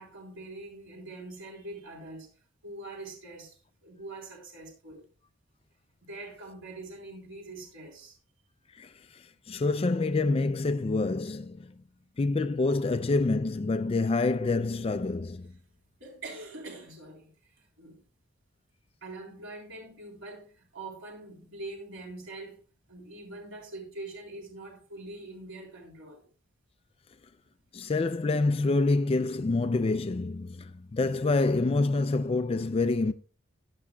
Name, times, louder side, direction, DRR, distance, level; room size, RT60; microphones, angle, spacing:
voice 1, 0.0-2.3 2.6-5.0 6.0-8.2 16.0-18.0 19.0-22.6 22.9-26.2, right 2 dB, 70° right, 3.6 m, -44 dB
voice 2, 8.7-11.7 12.2-15.5 27.7-33.1, left 3 dB, 30° left, 0.4 m, -27 dB
15.5 x 9.8 x 2.3 m
head